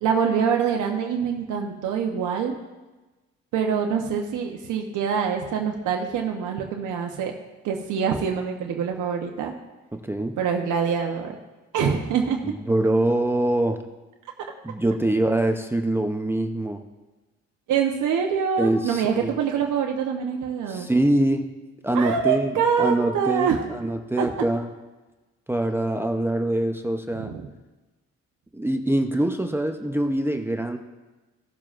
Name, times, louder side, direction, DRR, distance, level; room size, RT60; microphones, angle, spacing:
voice 1, 0.0-2.6 3.5-7.3 7.6-9.5 10.4-11.3 11.7-12.4 17.7-20.9 21.9-23.6 24.2-24.3 27.2-27.4, right 7 dB, 80° right, 2 dB, 1.0 m, -25 dB
voice 2, 9.9-10.4 12.4-13.8 14.6-16.8 18.6-19.4 20.7-21.5 21.8-22.5 22.8-24.7 25.5-27.3 28.5-30.8, right 1 dB, 10° right, 5 dB, 0.7 m, -24 dB
17.0 x 7.3 x 2.5 m, 1.2 s
cardioid pair, 90°, 30 cm